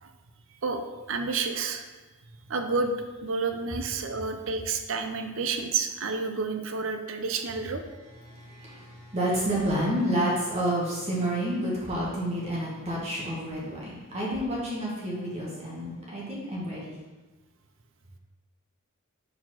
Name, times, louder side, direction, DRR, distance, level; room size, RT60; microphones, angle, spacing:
voice 1, 0.6-1.9 2.5-2.9 3.2-7.8, right 4 dB, 65° right, 6 dB, 0.6 m, -30 dB
voice 2, 8.2-16.9, right 1 dB, 30° right, -5 dB, 1.4 m, -29 dB
4.8 x 4.2 x 5.8 m, 1.2 s
head